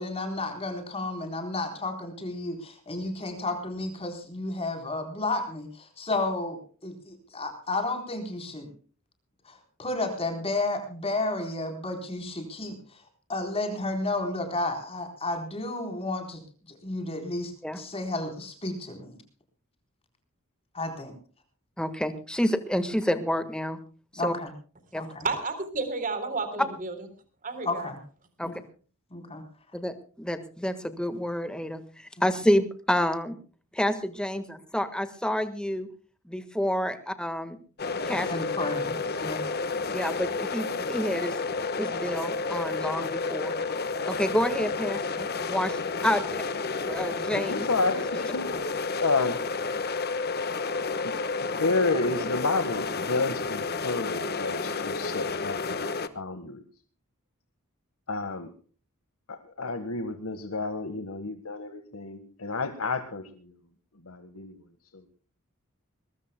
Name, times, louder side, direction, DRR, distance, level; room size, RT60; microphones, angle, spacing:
voice 1, 0.0-8.7 9.5-13.0 13.3-16.4 16.7-19.2 20.7-21.1 24.2-24.5 25.0-25.3 27.6-28.0 28.4-28.6 29.1-29.4 38.3-39.4, left 2 dB, 25° left, 4 dB, 4.1 m, -32 dB
voice 2, 21.8-23.8 24.2-24.3 24.9-25.0 28.4-28.5 29.7-33.4 33.7-35.9 36.3-37.5 38.0-38.3 39.9-41.3 41.8-43.5 44.0-46.2 46.8-47.6, equal, 5° left, 9 dB, 1.5 m, -28 dB
voice 3, 25.2-26.9 27.4-27.9, right 3 dB, 40° right, 9 dB, 3.7 m, -31 dB
sound 1, 37.8-56.1, left 4 dB, 45° left, 1.3 m, -31 dB
voice 4, 47.3-48.5 49.0-49.4 51.4-55.9 56.1-56.6 58.1-58.5 59.3-63.6 63.9-65.1, left 3 dB, 80° left, 8 dB, 1.6 m, -30 dB
22.0 x 21.5 x 2.2 m, 0.40 s
head